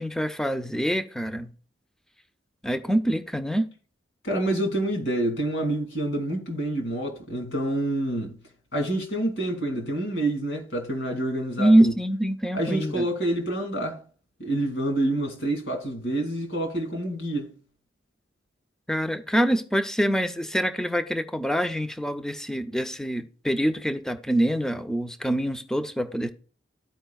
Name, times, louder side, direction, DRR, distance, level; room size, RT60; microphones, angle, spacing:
voice 1, 0.0-1.5 2.6-3.7 11.6-13.0 18.9-26.3, right 1 dB, 5° left, 0.5 m, -25 dB
voice 2, 4.2-8.4 8.7-11.9 12.5-14.0 14.4-17.5, right 1 dB, 75° left, 2.2 m, -27 dB
13.5 x 4.8 x 2.3 m
head